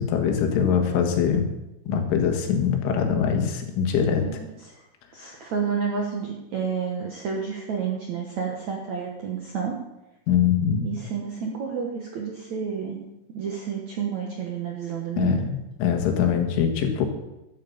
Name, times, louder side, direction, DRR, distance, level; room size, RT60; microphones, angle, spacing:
voice 1, 0.0-1.5 1.9-4.2 10.3-10.9 15.2-17.1, left 7 dB, 85° left, 4 dB, 4.1 m, -23 dB
voice 2, 4.2-4.9 5.1-9.8 10.8-13.0 13.3-15.5, right 6 dB, 70° right, 0 dB, 1.7 m, -30 dB
12.0 x 9.2 x 7.2 m, 0.96 s
omnidirectional pair, 5.5 m